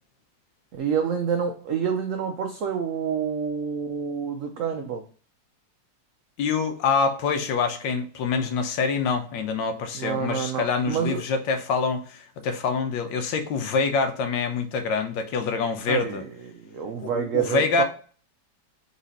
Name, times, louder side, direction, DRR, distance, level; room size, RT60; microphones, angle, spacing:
voice 1, 0.7-5.0 9.9-11.2 15.9-17.8, right 7 dB, 90° right, 0.6 m, -28 dB
voice 2, 6.4-16.2 17.0-17.8, left 5 dB, 85° left, 1.4 m, -26 dB
4.1 x 3.1 x 4.0 m
omnidirectional pair, 2.0 m